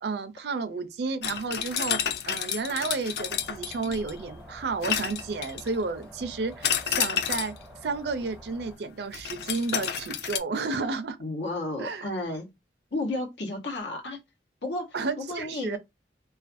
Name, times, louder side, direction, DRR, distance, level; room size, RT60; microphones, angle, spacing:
voice 1, 0.0-2.0 2.3-7.5 7.8-11.2 11.8-12.0 14.9-15.8, right 4 dB, 70° right, 0.4 m, -31 dB
sound 1, 1.2-4.2 4.8-5.8 6.6-7.6 9.1-10.4, left 9 dB, 65° left, 0.3 m, -30 dB
sound 2, 3.2-8.8, equal, 5° right, 0.4 m, -48 dB
voice 2, 11.2-12.5 12.9-14.2 14.6-14.8 15.2-15.8, left 2 dB, 85° left, 0.9 m, -32 dB
2.4 x 2.3 x 2.5 m
head